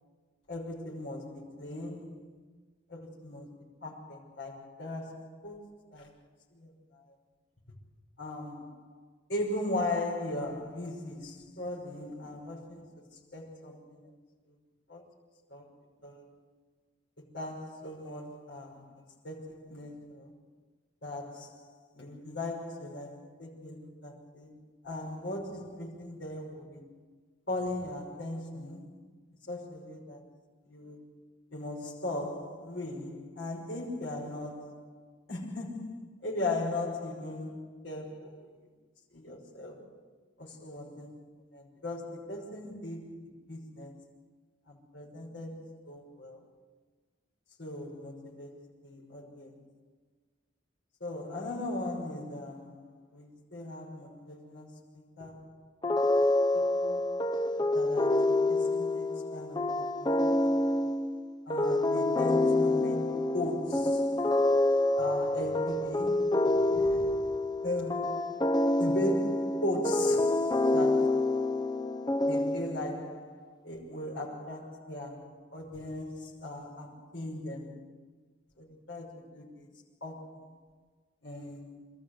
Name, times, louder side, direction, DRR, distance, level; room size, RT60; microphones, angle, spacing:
voice 1, 0.5-2.3 2.9-6.2 6.5-7.1 8.2-9.0 9.3-14.1 14.5-14.6 14.9-15.0 15.5-15.7 16.0-16.3 17.2-20.3 21.0-26.9 27.5-29.1 29.5-30.2 30.6-31.2 31.5-38.7 39.1-40.0 40.4-44.1 44.7-46.4 47.6-49.6 51.0-55.6 56.1-56.3 56.5-57.3 57.7-60.6 61.5-64.3 65.0-67.2 67.6-68.3 68.8-71.6 72.3-77.9 78.6-80.6 81.2-81.8, left 1 dB, 70° left, 5.9 m, -38 dB
sound 1, 55.8-73.0, left 2 dB, 20° left, 0.8 m, -27 dB
27.0 x 14.0 x 8.0 m
head